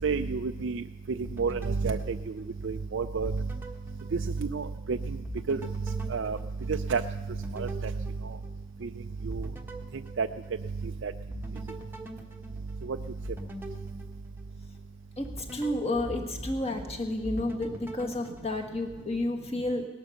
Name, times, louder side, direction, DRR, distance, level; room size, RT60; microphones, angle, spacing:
voice 1, 0.0-0.8 1.4-2.2 2.6-3.3 4.1-4.2 4.5-5.0 5.5-5.6 6.1-6.4 6.7-7.0 7.5-7.7 8.8-8.9 9.2-9.5 10.2-10.3 11.0-11.1 12.9-13.0, right 5 dB, 55° right, 6 dB, 0.4 m, -29 dB
sound 1, 1.2-2.8 3.2-4.9 5.2-8.9 9.3-10.9 11.3-14.8 15.2-16.9 17.2-19.2, right 1 dB, 10° right, 1.0 m, -44 dB
voice 2, 15.2-19.9, left 1 dB, 25° left, 3 dB, 1.6 m, -31 dB
18.0 x 11.5 x 6.6 m, 1.2 s
head